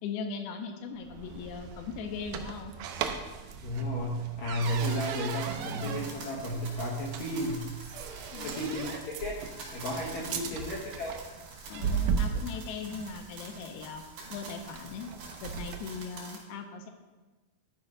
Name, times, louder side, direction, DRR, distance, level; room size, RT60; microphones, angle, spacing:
voice 1, 0.0-2.7 8.3-8.6 10.2-10.6 11.7-14.0 14.3-15.1 15.4-16.9, left 5 dB, 85° left, 5 dB, 2.6 m, -39 dB
sound 1, 1.0-16.0, right 6 dB, 80° right, 1.9 m, -37 dB
voice 2, 3.6-7.7 8.4-9.4 9.7-11.1, equal, 65° left, -4 dB, 1.9 m, -33 dB
sound 2, 4.6-16.4, right 3 dB, 60° right, 3.7 m, -47 dB
12.5 x 4.4 x 5.1 m, 1.2 s
omnidirectional pair, 4.5 m